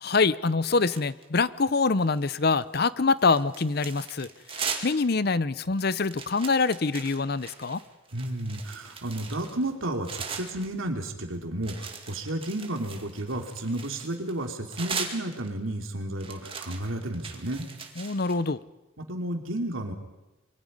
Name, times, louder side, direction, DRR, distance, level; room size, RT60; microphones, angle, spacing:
voice 1, 0.0-7.8 18.0-18.6, left 4 dB, 50° left, 17 dB, 0.7 m, -25 dB
sound 1, 0.9-1.4 1.9-2.6 3.0-5.0 5.4-5.5 5.8-10.7 11.6-15.7 16.2-18.3, right 5 dB, 30° right, 2.3 m, -39 dB
voice 2, 8.1-17.7 19.0-19.9, right 1 dB, 85° right, 4 dB, 3.0 m, -32 dB
26.5 x 23.5 x 5.4 m, 1.0 s
head